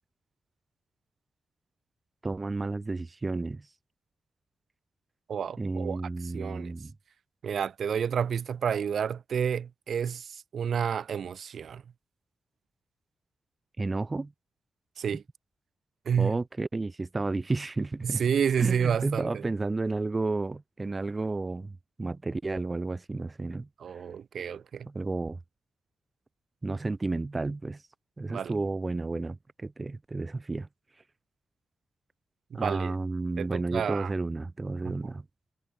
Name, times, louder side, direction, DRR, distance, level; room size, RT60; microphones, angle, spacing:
voice 1, 2.2-3.7 5.6-6.9 13.8-14.3 16.2-18.2 18.6-23.7 24.9-25.4 26.6-27.8 28.2-30.7 32.5-35.3, right 3 dB, 25° right, 0.4 m, -32 dB
voice 2, 5.3-6.0 6.3-6.7 7.4-11.8 15.0-15.2 16.1-16.4 18.0-19.4 23.8-24.9 28.3-28.5 32.5-32.9 33.4-34.1, right 7 dB, 70° right, 0.6 m, -30 dB
cardioid pair, 90°, 0 cm